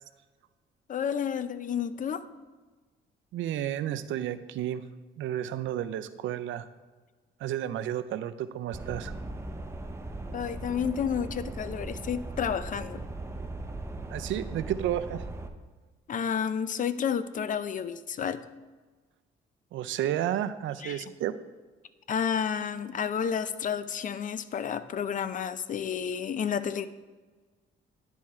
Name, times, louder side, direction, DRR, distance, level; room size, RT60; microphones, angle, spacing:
voice 1, 0.9-2.2 10.3-13.0 16.1-18.4 20.8-21.0 22.1-26.9, left 7 dB, 40° left, 13 dB, 0.4 m, -31 dB
voice 2, 3.3-4.8 5.2-6.7 7.4-9.1 14.1-15.2 19.7-21.3, right 11 dB, 75° right, 12 dB, 0.5 m, -31 dB
sound 1, 8.7-15.5, right 2 dB, 15° right, 0.6 m, -38 dB
10.5 x 3.6 x 4.3 m, 1.3 s
cardioid pair, 90°, 20 cm